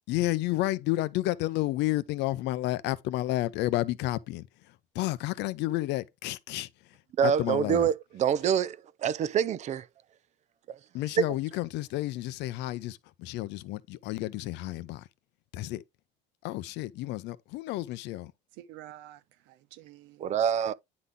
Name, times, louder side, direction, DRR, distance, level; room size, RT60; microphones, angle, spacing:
voice 1, 0.1-4.5 4.9-6.7 7.2-7.9 10.9-15.1 15.5-15.8 16.4-18.3, left 16 dB, 65° left, 0.6 m, -31 dB
voice 2, 7.2-8.8 9.0-9.9 20.2-20.7, right 8 dB, 40° right, 0.5 m, -26 dB
voice 3, 18.6-19.2 19.5-20.3 20.6-20.7, right 13 dB, 80° right, 1.0 m, -49 dB
9.7 x 4.0 x 3.6 m
cardioid pair, 140°, 19 cm